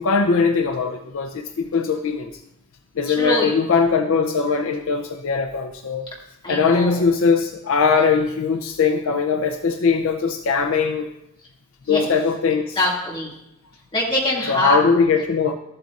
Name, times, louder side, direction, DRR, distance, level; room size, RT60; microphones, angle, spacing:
voice 1, 0.0-2.3 3.0-6.1 6.5-11.1 11.9-12.8 14.5-15.5, left 5 dB, 65° left, 6 dB, 0.5 m, -20 dB
voice 2, 3.1-3.5 6.4-7.0 11.9-12.1 12.8-13.3 13.9-14.8, left 1 dB, 20° left, -4 dB, 2.0 m, -23 dB
13.5 x 7.8 x 2.4 m, 0.85 s
head